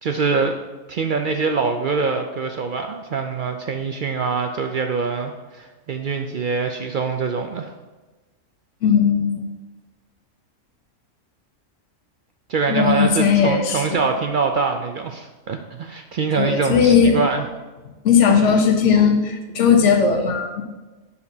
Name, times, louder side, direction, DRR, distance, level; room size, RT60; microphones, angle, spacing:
voice 1, 0.0-0.5 0.9-7.7 12.5-17.5, right 4 dB, 70° right, 5 dB, 0.5 m, -24 dB
voice 2, 8.8-9.4 12.7-14.1 16.4-17.2 18.0-20.6, left 6 dB, 65° left, 4 dB, 1.2 m, -17 dB
8.2 x 6.9 x 2.7 m, 1.2 s
omnidirectional pair, 1.4 m